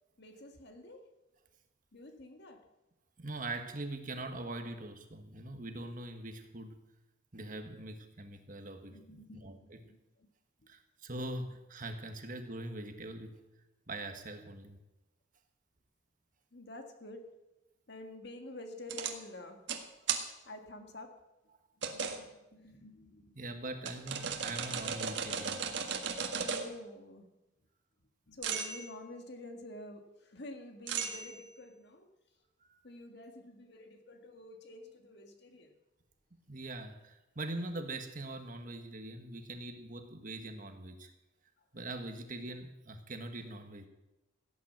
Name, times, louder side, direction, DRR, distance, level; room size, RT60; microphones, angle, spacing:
voice 1, 0.2-1.0 1.9-2.6 8.9-10.3 10.6-10.7 16.5-17.3 17.9-19.6 20.5-21.1 21.8-23.4 26.3-27.3 28.3-32.1 32.8-35.7, left 1 dB, 55° left, 5 dB, 1.9 m, -49 dB
voice 2, 3.2-6.8 7.3-9.8 10.7-13.4 13.9-14.8 23.3-25.6 32.6-32.8 36.5-41.1 41.7-43.9, right 2 dB, 40° right, 6 dB, 1.5 m, -42 dB
sound 1, 18.9-19.1 19.7-19.8 20.1-20.2 21.8-22.2 23.9-26.7 28.4-28.9 30.9-31.5, right 6 dB, 60° right, 1.7 m, -36 dB
17.0 x 9.2 x 7.5 m, 0.99 s
head